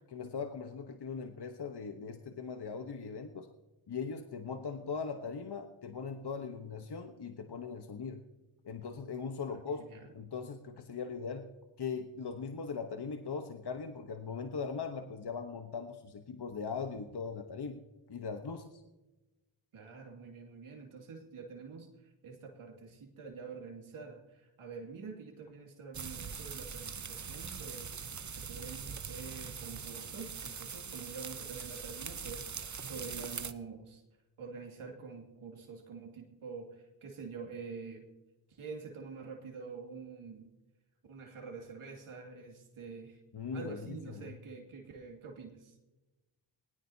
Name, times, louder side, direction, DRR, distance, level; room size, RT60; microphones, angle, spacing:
voice 1, 0.1-3.5 3.9-8.2 8.6-9.9 10.1-11.5 11.8-17.8 18.1-18.8 43.3-44.3, left 5 dB, 50° left, 6 dB, 1.1 m, -40 dB
voice 2, 9.5-10.1 19.7-21.9 22.2-32.5 32.9-34.0 34.4-38.1 38.6-40.5 41.1-43.2 43.5-45.7, right 5 dB, 85° right, 1 dB, 2.4 m, -46 dB
sound 1, 25.9-33.5, right 6 dB, 35° right, 0.8 m, -42 dB
19.5 x 19.0 x 2.8 m, 1.1 s
cardioid pair, 50°, 49 cm